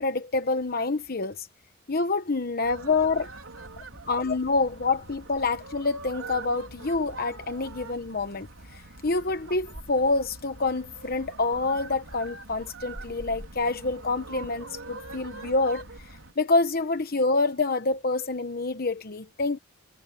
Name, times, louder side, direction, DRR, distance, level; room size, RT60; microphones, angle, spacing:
voice 1, 0.0-1.5 1.9-3.3 4.1-8.5 8.7-15.9 16.4-19.6, left 3 dB, 45° left, 1.0 m, -27 dB
sound 1, 2.6-16.3, right 2 dB, 75° right, 4.7 m, -43 dB
head